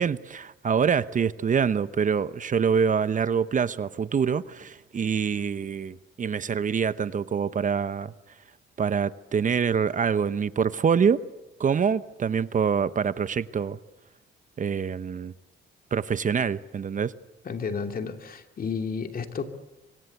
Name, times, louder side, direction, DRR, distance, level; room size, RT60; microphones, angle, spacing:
voice 1, 0.0-8.1 8.8-11.2 11.6-13.8 14.6-15.3 15.9-17.1, right 6 dB, 40° right, 0.9 m, -25 dB
voice 2, 17.4-19.5, left 5 dB, 45° left, 2.8 m, -32 dB
25.5 x 24.0 x 8.3 m
cardioid pair, 90°, 20 cm